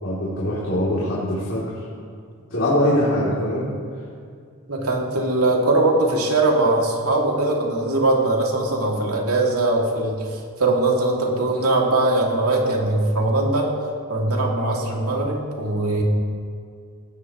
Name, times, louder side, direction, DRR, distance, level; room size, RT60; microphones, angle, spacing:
voice 1, 0.0-1.7 2.5-3.7, left 1 dB, 60° left, -8 dB, 3.1 m, -22 dB
voice 2, 4.7-13.7 14.1-16.0, right 2 dB, 85° right, -1 dB, 2.5 m, -21 dB
18.0 x 16.0 x 3.1 m, 2.2 s
head